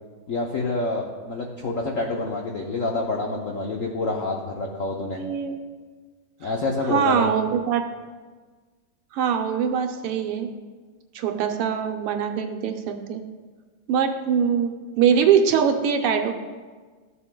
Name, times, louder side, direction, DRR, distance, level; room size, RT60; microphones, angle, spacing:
voice 1, 0.3-5.2 6.4-7.3, left 3 dB, 75° left, 0 dB, 0.7 m, -27 dB
voice 2, 5.2-5.6 6.9-7.8 9.1-10.5 11.1-13.2 13.9-16.3, right 7 dB, 85° right, 5 dB, 1.7 m, -22 dB
14.0 x 6.9 x 2.2 m, 1.4 s
omnidirectional pair, 2.4 m